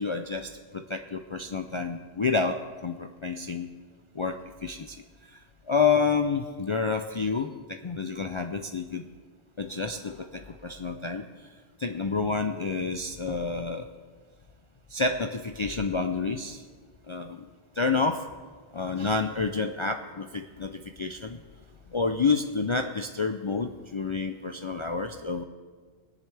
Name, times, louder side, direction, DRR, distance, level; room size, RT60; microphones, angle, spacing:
voice 1, 0.0-3.7 4.1-5.0 5.3-9.1 9.6-11.3 11.8-13.9 14.9-16.6 17.1-17.4 17.8-18.3 18.7-21.4 21.9-25.4, left 4 dB, 50° left, 6 dB, 0.3 m, -29 dB
19.0 x 10.5 x 3.4 m, 1.5 s
omnidirectional pair, 1.2 m